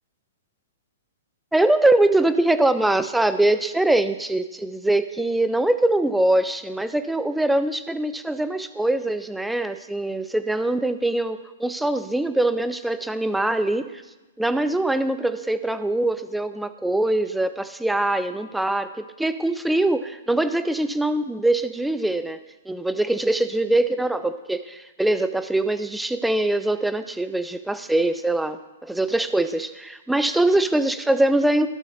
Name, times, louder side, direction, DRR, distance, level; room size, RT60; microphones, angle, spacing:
voice 1, 1.5-13.9 14.4-22.4 22.7-31.7, right 1 dB, 5° right, 11 dB, 0.4 m, -23 dB
15.0 x 6.3 x 2.7 m, 1.1 s
hypercardioid pair, 140°, 0 cm